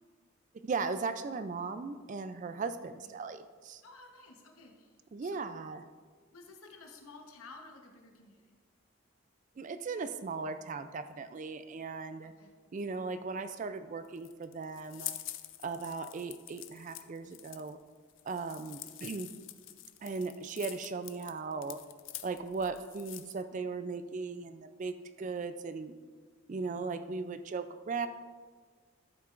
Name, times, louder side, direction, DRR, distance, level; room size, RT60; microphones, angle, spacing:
voice 1, 0.6-3.8 5.1-5.8 9.6-12.3 12.7-15.2 15.6-17.8 18.3-19.3 20.0-21.8 22.2-26.0 26.5-28.1, right 4 dB, 35° right, 11 dB, 0.3 m, -37 dB
voice 2, 3.8-5.5 6.3-8.5 12.4-12.5, left 3 dB, 85° left, 2 dB, 1.0 m, -53 dB
sound 1, 14.0-23.4, left 14 dB, 65° left, 0.4 m, -46 dB
13.0 x 7.4 x 2.5 m, 1.5 s
head